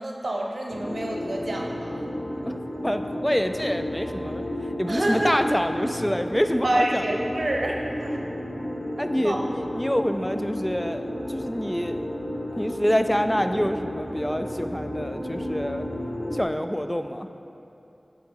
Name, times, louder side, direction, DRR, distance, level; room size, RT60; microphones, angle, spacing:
voice 1, 0.0-2.0 4.9-5.3 6.6-8.2 9.2-9.4, right 1 dB, 75° right, 0 dB, 0.7 m, -27 dB
sound 1, 0.7-16.4, equal, 30° left, 0.9 m, -32 dB
voice 2, 2.4-4.5 4.8-7.2 9.0-12.0 12.6-15.9 16.3-17.3, equal, 10° left, 8 dB, 0.3 m, -26 dB
8.3 x 3.8 x 4.5 m, 2.7 s
wide cardioid pair, 45°, 0 cm